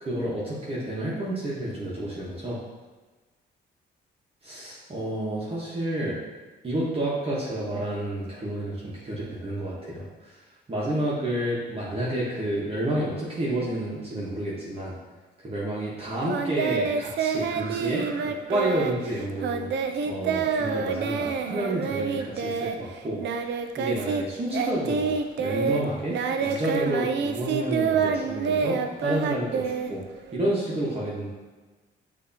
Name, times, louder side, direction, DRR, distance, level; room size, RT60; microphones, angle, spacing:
voice 1, 0.0-2.6 4.4-6.2 6.6-10.4 10.7-14.9 15.4-19.7 20.0-30.0 30.3-31.3, right 1 dB, 30° right, -7 dB, 1.1 m, -30 dB
Singing, 16.3-24.2 24.5-30.4, right 6 dB, 60° right, 0.4 m, -27 dB
6.6 x 2.8 x 2.8 m, 1.3 s
cardioid pair, 90°, 20 cm